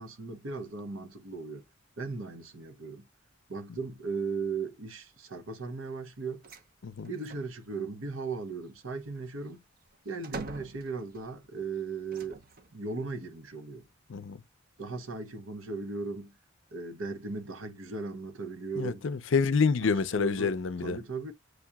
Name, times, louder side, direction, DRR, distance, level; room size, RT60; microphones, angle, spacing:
voice 1, 0.0-1.6 2.0-3.1 3.5-6.4 7.0-9.6 10.0-12.4 12.7-13.9 14.8-16.4 16.7-19.0 19.8-21.3, right 4 dB, 80° right, 0.9 m, -37 dB
sound 1, 6.4-6.7 7.0-7.5 8.9-11.4 12.1-12.8, right 3 dB, 45° right, 0.7 m, -45 dB
voice 2, 18.8-21.0, left 5 dB, 65° left, 0.5 m, -27 dB
7.9 x 2.9 x 2.3 m
head